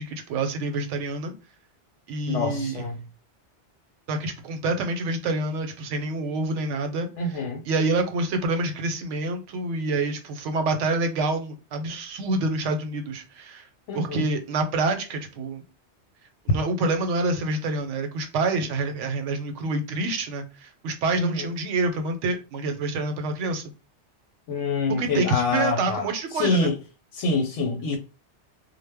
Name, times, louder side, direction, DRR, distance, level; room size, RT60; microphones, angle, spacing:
voice 1, 0.0-1.3 2.1-2.8 4.1-7.4 7.6-13.7 13.9-15.6 16.5-23.6 25.0-26.7, right 2 dB, 90° right, 0.9 m, -27 dB
voice 2, 2.3-3.0 7.2-7.6 13.9-14.3 21.2-21.5 24.5-26.8 27.1-28.0, left 3 dB, 90° left, 0.9 m, -26 dB
2.1 x 2.0 x 3.3 m
omnidirectional pair, 1.2 m